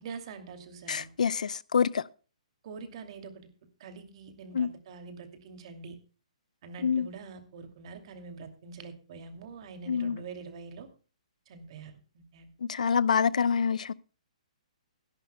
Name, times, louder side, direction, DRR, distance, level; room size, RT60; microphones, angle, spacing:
voice 1, 0.0-1.1 2.6-3.3 3.8-6.0 6.6-10.9 11.5-12.5, right 5 dB, 50° right, 2.5 m, -45 dB
voice 2, 0.9-2.0 4.5-4.7 6.8-7.1 9.9-10.2 12.7-13.9, left 6 dB, 75° left, 0.6 m, -26 dB
21.5 x 11.5 x 2.2 m
hypercardioid pair, 145°, 4 cm